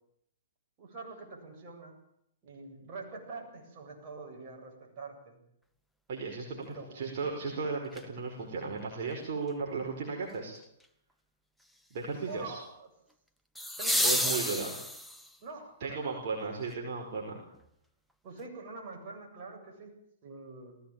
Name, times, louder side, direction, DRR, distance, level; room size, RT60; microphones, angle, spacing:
voice 1, 0.8-2.0 2.4-5.4 6.6-7.0 12.3-12.9 13.8-14.6 15.4-16.2 18.2-20.8, right 3 dB, 35° right, 0 dB, 7.9 m, -45 dB
voice 2, 6.1-10.5 11.9-12.6 14.0-14.7 15.8-17.4, right 4 dB, 55° right, -1 dB, 4.9 m, -35 dB
sound 1, 7.9-8.0 13.5-15.3 17.5-17.6, left 1 dB, ahead, 1.1 m, -30 dB
19.5 x 16.0 x 9.0 m, 0.75 s
hypercardioid pair, 125°, 0 cm